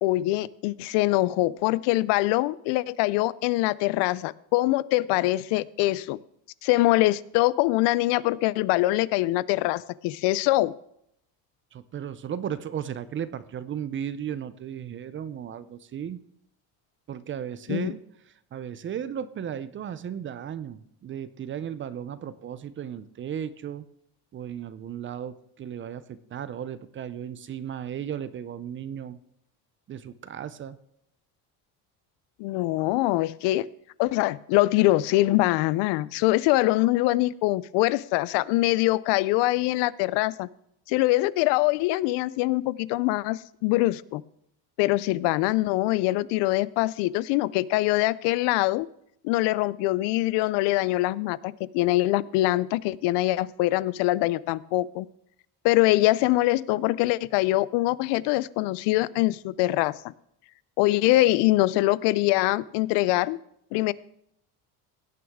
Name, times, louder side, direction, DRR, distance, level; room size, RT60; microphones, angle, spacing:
voice 1, 0.0-6.2 6.6-10.7 17.7-17.9 32.4-33.7 34.0-40.5 40.9-44.2 44.8-48.9 49.2-55.1 55.6-59.9 60.8-63.4 63.7-63.9, left 18 dB, 80° left, 20 dB, 0.6 m, -23 dB
voice 2, 11.7-16.2 17.1-18.0 18.5-23.9 24.3-29.2 29.9-30.8, right 9 dB, 30° right, 15 dB, 0.5 m, -35 dB
17.5 x 9.4 x 3.6 m, 0.74 s
cardioid pair, 145°, 41 cm